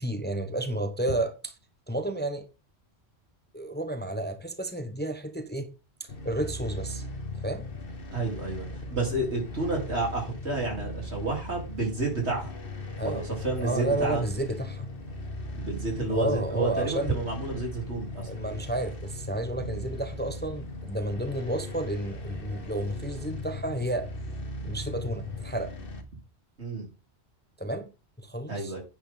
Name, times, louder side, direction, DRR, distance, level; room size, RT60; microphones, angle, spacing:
voice 1, 0.0-1.3 1.9-2.5 3.5-5.7 6.0-7.0 7.4-7.6 13.0-13.3 13.6-14.9 16.1-17.1 18.2-24.1 24.6-25.7 27.6-27.9 28.2-28.7, right 1 dB, 10° left, 0.9 m, -31 dB
sound 1, 6.1-26.0, left 2 dB, 55° left, 1.6 m, -38 dB
voice 2, 8.1-12.5 13.0-14.2 15.5-18.3 26.6-26.9 28.5-28.8, right 3 dB, 80° right, 4.2 m, -30 dB
9.7 x 9.1 x 3.9 m
omnidirectional pair, 1.1 m